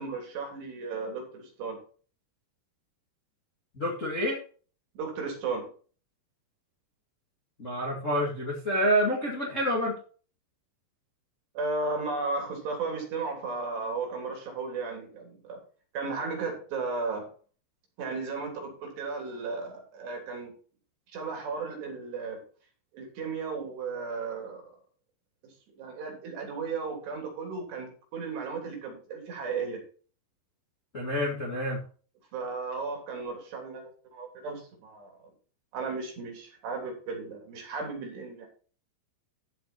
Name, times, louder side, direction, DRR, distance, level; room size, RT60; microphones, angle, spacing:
voice 1, 0.0-1.8 5.0-5.7 11.6-15.6 15.9-17.3 18.0-20.5 21.1-22.4 22.9-24.8 25.4-29.8 32.3-35.3 35.7-38.5, right 4 dB, 65° right, 1 dB, 5.3 m, -35 dB
voice 2, 3.8-4.4 7.6-10.0 30.9-31.8, equal, 30° left, -2 dB, 1.4 m, -28 dB
14.5 x 5.8 x 4.5 m, 0.40 s
omnidirectional pair, 5.2 m